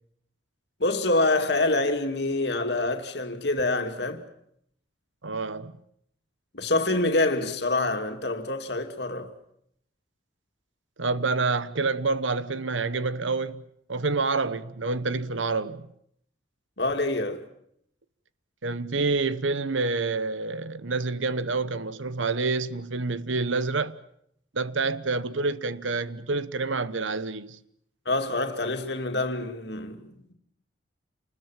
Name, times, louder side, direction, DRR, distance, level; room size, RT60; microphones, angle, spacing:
voice 1, 0.8-4.2 6.5-9.3 16.8-17.4 28.1-30.3, left 2 dB, 60° left, 2.6 m, -26 dB
voice 2, 5.2-5.7 11.0-13.6 13.9-15.8 18.6-24.0 24.5-27.6, right 3 dB, 85° right, 1.1 m, -28 dB
28.5 x 21.0 x 7.5 m
head